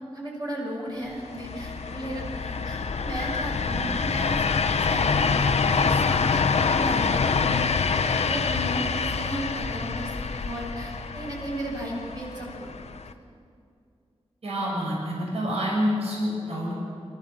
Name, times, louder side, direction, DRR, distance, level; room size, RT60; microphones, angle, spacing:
voice 1, 0.1-4.4 4.7-7.6 7.9-12.9, right 1 dB, 40° right, -3 dB, 6.6 m, -35 dB
sound 1, 1.2-13.1, left 5 dB, 75° left, 0.9 m, -26 dB
voice 2, 14.4-16.7, equal, 65° right, -3 dB, 6.6 m, -27 dB
27.5 x 14.5 x 7.5 m, 2.4 s
wide cardioid pair, 135°, 11 cm